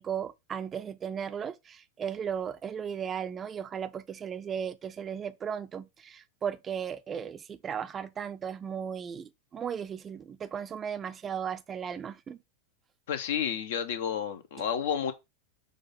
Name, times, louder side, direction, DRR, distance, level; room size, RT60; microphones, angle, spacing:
voice 1, 0.0-12.4, right 8 dB, 25° right, 0.6 m, -36 dB
voice 2, 13.1-15.1, left 8 dB, 55° left, 1.0 m, -31 dB
6.6 x 2.7 x 5.6 m
figure-of-eight pair, 90°, 0 cm